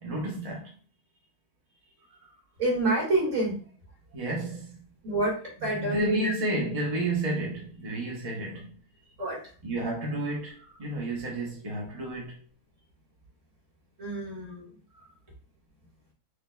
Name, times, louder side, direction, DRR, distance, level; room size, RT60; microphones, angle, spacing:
voice 1, 0.0-0.7 2.1-2.3 4.1-4.8 5.6-8.7 9.6-12.4 14.9-15.1, right 1 dB, 30° right, 0.8 m, -32 dB
voice 2, 2.6-3.6 5.0-6.3 9.2-9.4 14.0-14.7, right 2 dB, 55° right, 2.3 m, -27 dB
6.2 x 2.8 x 2.2 m
omnidirectional pair, 1.6 m